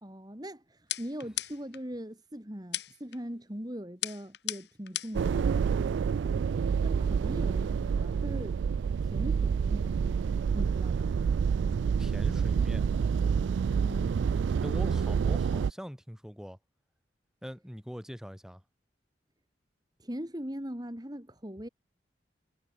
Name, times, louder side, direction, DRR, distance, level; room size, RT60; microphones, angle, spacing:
voice 1, 0.0-5.7 6.2-6.5 6.8-8.6 9.0-10.0 10.5-11.1 13.8-14.3 20.0-21.7, equal, 20° right, 2.7 m, -41 dB
sound 1, 0.9-1.8 2.7-3.2 4.0-5.3, left 13 dB, 65° left, 2.8 m, -36 dB
sound 2, 5.1-15.7, right 6 dB, 80° right, 0.3 m, -28 dB
voice 2, 12.0-12.9 14.6-16.6 17.4-18.6, equal, 5° right, 6.1 m, -42 dB
head